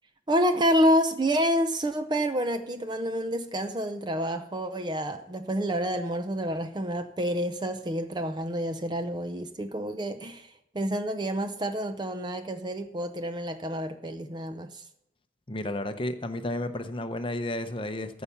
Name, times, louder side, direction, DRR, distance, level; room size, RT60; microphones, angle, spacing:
voice 1, 0.3-14.8, equal, 20° right, 8 dB, 0.5 m, -28 dB
voice 2, 15.5-18.2, left 1 dB, 25° left, 8 dB, 0.7 m, -32 dB
14.5 x 5.5 x 7.1 m, 0.84 s
head